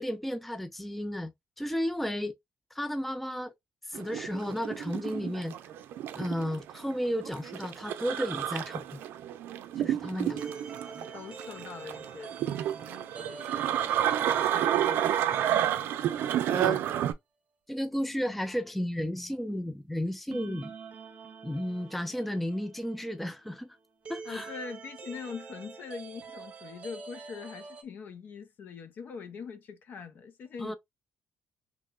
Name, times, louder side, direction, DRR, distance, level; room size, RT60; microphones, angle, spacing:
voice 1, 0.0-1.3 1.6-2.3 2.7-3.5 3.8-5.6 6.1-9.0 9.8-10.4 16.5-16.8 17.7-20.7 21.4-23.7 24.1-24.5 30.6-30.7, equal, 5° left, 0.3 m, -33 dB
sound 1, 3.9-17.1, right 11 dB, 80° right, 0.4 m, -30 dB
sound 2, 9.6-16.3 16.6-16.7 20.3-27.8, right 5 dB, 40° right, 0.8 m, -47 dB
voice 2, 9.7-10.4 10.7-13.9 14.5-16.0 17.9-18.0 24.3-30.8, left 5 dB, 60° left, 0.7 m, -44 dB
3.0 x 2.0 x 3.7 m
cardioid pair, 110°, 4 cm